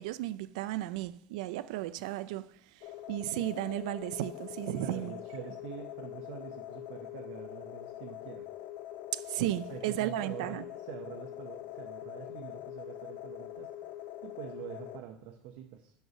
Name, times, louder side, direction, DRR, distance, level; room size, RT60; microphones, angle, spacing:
voice 1, 0.0-2.5 2.8-5.1 9.1-10.6, right 15 dB, 85° right, 0.3 m, -34 dB
sound 1, 2.8-15.0, left 12 dB, 65° left, 0.5 m, -44 dB
voice 2, 4.8-8.5 9.7-10.6 10.9-13.7 14.2-15.9, right 10 dB, 70° right, 0.8 m, -45 dB
5.4 x 4.6 x 5.9 m
cardioid pair, 150°, 4 cm